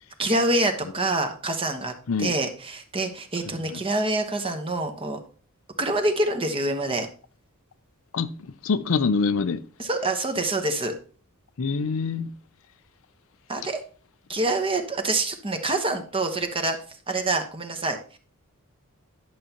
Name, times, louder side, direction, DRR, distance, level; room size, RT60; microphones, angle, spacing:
voice 1, 0.2-1.9 2.2-5.2 5.8-7.1 9.8-10.9 13.5-13.8 14.3-16.8 17.1-18.2, right 2 dB, 25° right, 1.1 m, -26 dB
voice 2, 8.6-9.6 11.6-12.3, left 5 dB, 65° left, 0.5 m, -25 dB
11.0 x 6.8 x 2.9 m
head